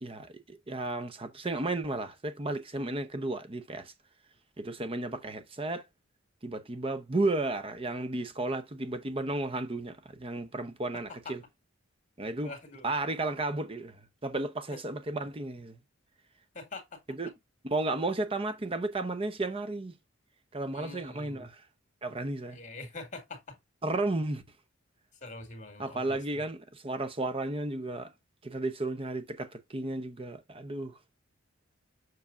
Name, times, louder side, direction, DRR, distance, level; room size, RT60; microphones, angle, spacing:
voice 1, 0.0-3.9 4.6-5.8 6.4-11.4 12.2-12.5 12.8-14.0 14.2-15.8 17.2-17.3 17.7-19.9 20.5-21.6 22.0-22.6 23.8-24.4 25.8-28.1 28.4-31.0, right 2 dB, 30° right, 0.8 m, -33 dB
voice 2, 10.9-11.3 12.4-12.9 16.5-17.0 20.7-21.5 22.5-23.6 25.2-26.4, left 3 dB, 40° left, 2.2 m, -44 dB
7.2 x 6.3 x 2.6 m
head